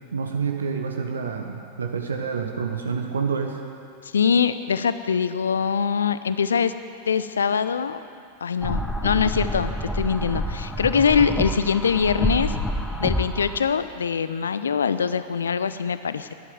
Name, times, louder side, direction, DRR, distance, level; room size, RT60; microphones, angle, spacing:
voice 1, 0.1-3.6, right 5 dB, 70° right, 4 dB, 1.1 m, -28 dB
voice 2, 4.0-6.7 7.1-8.0 8.4-12.6 13.0-16.3, left 6 dB, 70° left, 13 dB, 0.5 m, -23 dB
sound 1, 8.6-13.6, equal, 5° left, 1.0 m, -28 dB
13.5 x 11.0 x 7.9 m, 2.5 s
figure-of-eight pair, 90°, 0 cm